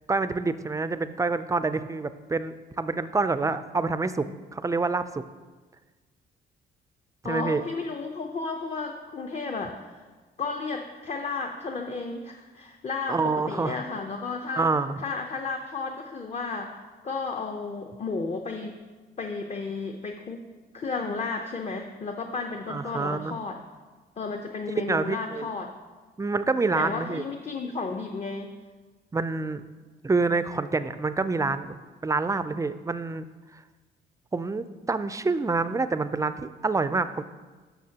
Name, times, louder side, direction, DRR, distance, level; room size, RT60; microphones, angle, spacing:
voice 1, 0.1-4.3 4.5-5.2 7.2-7.6 13.1-13.8 14.6-15.0 22.7-23.4 24.8-25.5 26.2-27.2 29.1-29.6 30.0-31.7 32.0-33.2 34.3-37.2, right 3 dB, 15° right, 12 dB, 0.4 m, -27 dB
voice 2, 7.2-10.0 10.4-14.7 15.0-16.8 17.0-18.8 19.2-20.5 20.7-23.6 24.2-25.7 26.7-28.5, left 4 dB, 35° left, 3 dB, 0.6 m, -33 dB
13.0 x 5.8 x 2.8 m, 1.3 s
cardioid pair, 90°, 20 cm